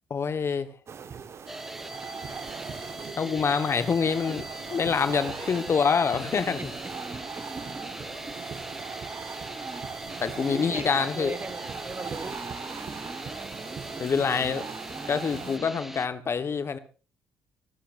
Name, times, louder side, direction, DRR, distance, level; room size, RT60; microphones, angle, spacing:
voice 1, 0.1-0.7 3.2-4.4 4.7-6.6 10.2-11.3 14.0-14.6 15.1-16.8, left 6 dB, 45° left, 1.3 m, -26 dB
sound 1, 0.9-15.6, right 6 dB, 50° right, 1.4 m, -39 dB
sound 2, 1.5-16.1, right 1 dB, 5° right, 1.3 m, -41 dB
voice 2, 4.0-4.4 6.3-6.7 7.3-8.4 10.3-12.5 13.1-13.2, right 3 dB, 30° right, 2.5 m, -40 dB
30.0 x 13.0 x 2.6 m
hypercardioid pair, 45°, 6 cm